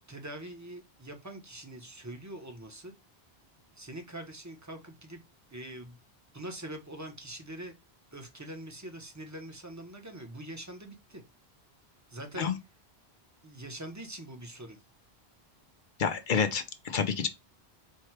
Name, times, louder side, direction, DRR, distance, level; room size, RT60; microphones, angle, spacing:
voice 1, 0.1-2.9 3.8-5.2 5.5-6.0 6.3-7.7 8.1-11.2 12.1-12.5 13.4-14.8, right 1 dB, 20° right, 0.8 m, -43 dB
voice 2, 16.0-17.3, left 6 dB, 55° left, 0.7 m, -28 dB
4.5 x 2.3 x 4.5 m
omnidirectional pair, 1.1 m